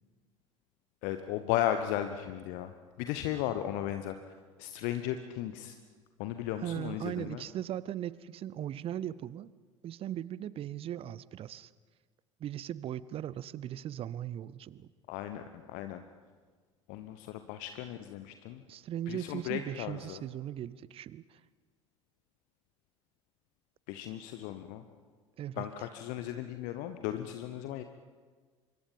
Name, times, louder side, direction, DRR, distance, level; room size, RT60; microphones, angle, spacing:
voice 1, 1.0-2.7 3.0-4.2 4.6-5.8 6.2-7.4 15.1-16.0 16.9-18.6 19.1-20.2 23.9-24.8 25.6-27.8, left 12 dB, 55° left, 9 dB, 1.0 m, -35 dB
voice 2, 6.6-9.5 9.8-11.7 12.4-14.9 18.7-21.4 25.4-25.6, right 11 dB, 35° right, 20 dB, 0.7 m, -38 dB
26.0 x 23.0 x 5.4 m, 1.5 s
figure-of-eight pair, 65°, 16 cm